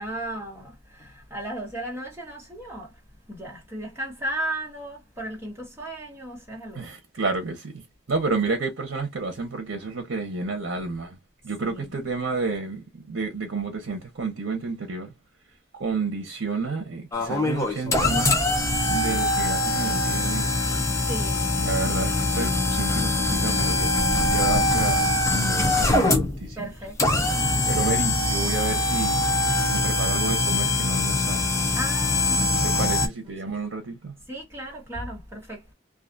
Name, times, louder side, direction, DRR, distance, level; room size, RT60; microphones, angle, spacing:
voice 1, 0.0-2.9 3.3-6.9 11.6-11.9 20.9-21.9 26.6-27.3 27.7-28.0 31.7-33.3 34.3-35.7, right 1 dB, 10° right, 1.1 m, -36 dB
voice 2, 6.7-7.7 8.1-11.2 11.4-15.1 15.7-18.4 18.9-20.5 21.6-26.7 27.7-31.5 32.6-34.1, right 3 dB, 75° right, 0.8 m, -30 dB
sound 1, 17.1-33.1, left 2 dB, 15° left, 0.5 m, -23 dB
2.6 x 2.3 x 2.5 m
head